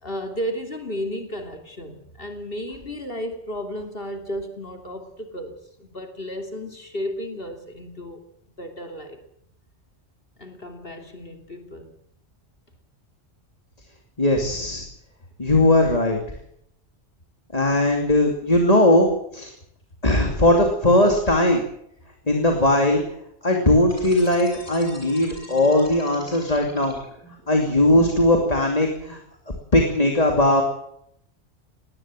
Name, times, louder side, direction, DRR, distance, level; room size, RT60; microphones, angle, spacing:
voice 1, 0.0-8.2 8.6-9.2 10.4-12.0, equal, 55° left, 5 dB, 2.9 m, -33 dB
voice 2, 14.2-14.8 15.4-16.2 17.5-19.5 20.0-21.6 22.3-23.0 23.4-27.0 27.5-29.2 29.7-30.6, left 1 dB, 35° left, 2 dB, 2.8 m, -19 dB
sound 1, 23.8-27.4, equal, 15° left, 6.6 m, -43 dB
19.5 x 18.5 x 7.6 m, 0.72 s
omnidirectional pair, 1.2 m